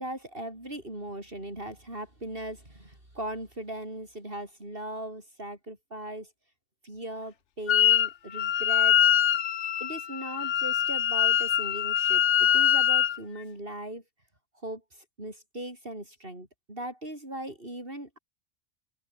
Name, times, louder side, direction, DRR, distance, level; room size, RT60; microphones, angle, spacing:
voice 1, 0.0-6.3 6.8-9.0 9.8-14.0 14.6-18.2, right 1 dB, 50° right, 6.8 m, -39 dB
Wind instrument woodwind instrument, 7.7-8.1 8.3-13.2, left 10 dB, 75° left, 1.1 m, -23 dB
open air
omnidirectional pair, 1.2 m